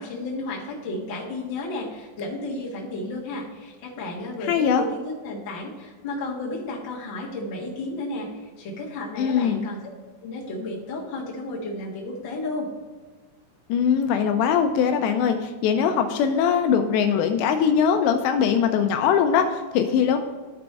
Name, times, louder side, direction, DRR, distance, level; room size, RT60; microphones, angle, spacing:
voice 1, 0.0-8.3 8.6-9.8 10.2-12.7, left 2 dB, 45° left, -5 dB, 1.5 m, -33 dB
voice 2, 4.4-4.8 9.2-9.7 13.7-20.2, left 7 dB, 85° left, 6 dB, 2.7 m, -21 dB
13.0 x 5.0 x 3.4 m, 1.3 s
omnidirectional pair, 5.2 m